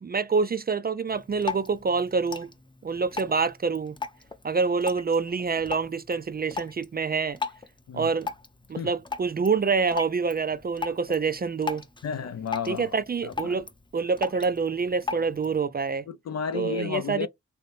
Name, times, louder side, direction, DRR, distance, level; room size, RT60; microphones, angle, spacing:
voice 1, 0.0-2.5 2.8-4.0 4.4-7.4 7.9-8.3 8.7-11.8 12.6-16.1 16.5-17.3, right 5 dB, 30° right, 0.4 m, -26 dB
Drip, 1.1-15.6, left 5 dB, 15° left, 0.7 m, -39 dB
voice 2, 12.0-12.9 13.2-13.6 16.1-17.3, left 7 dB, 55° left, 0.5 m, -32 dB
3.1 x 2.7 x 3.3 m
cardioid pair, 50°, 32 cm